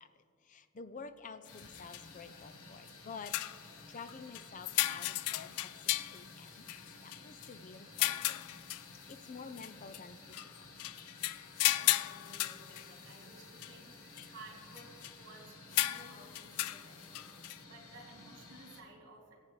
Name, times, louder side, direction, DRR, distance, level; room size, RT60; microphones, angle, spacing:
voice 1, 0.0-6.7 7.0-8.4 9.1-10.7 11.2-11.4, left 5 dB, 35° left, 10 dB, 0.5 m, -50 dB
sound 1, 1.5-2.0 2.9-3.0 3.2-3.7 4.1-7.5 8.0-9.1 9.6-10.0 10.3-13.2 13.6-13.7 14.2-14.3 14.7-15.1 15.7-17.6, left 15 dB, 90° left, 0.3 m, -35 dB
sound 2, 1.5-18.8, left 2 dB, 65° left, 1.4 m, -54 dB
voice 2, 11.5-19.4, right 2 dB, 55° right, -1 dB, 2.8 m, -56 dB
23.0 x 8.3 x 3.2 m, 2.4 s
head